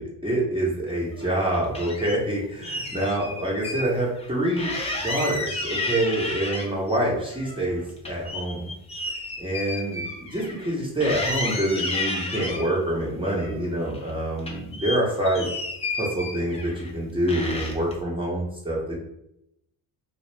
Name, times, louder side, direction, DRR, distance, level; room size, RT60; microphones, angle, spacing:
voice 1, 0.0-4.7 5.0-8.7 9.4-15.5 16.0-19.0, right 1 dB, 10° right, -5 dB, 0.9 m, -26 dB
sound 1, 1.1-2.2 2.6-3.9 4.2-4.3 4.6-7.0 7.3-10.7 11.0-12.7 13.3-14.1 14.4-16.9 17.3-17.9, left 2 dB, 15° left, 0.5 m, -32 dB
2.2 x 2.0 x 3.3 m, 0.81 s
hypercardioid pair, 55°, 48 cm